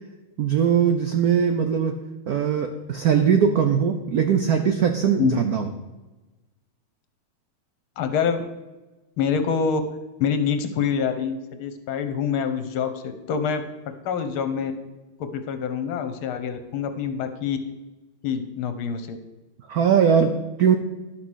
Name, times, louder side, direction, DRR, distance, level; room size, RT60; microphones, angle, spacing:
voice 1, 0.4-1.9 2.3-5.7 19.7-20.8, right 7 dB, 75° right, 6 dB, 0.8 m, -20 dB
voice 2, 8.0-8.4 9.2-9.8 10.2-13.6 14.1-14.7 15.2-17.6 18.2-19.2, left 7 dB, 75° left, 9 dB, 1.7 m, -26 dB
11.0 x 5.8 x 6.2 m, 1.1 s
omnidirectional pair, 2.4 m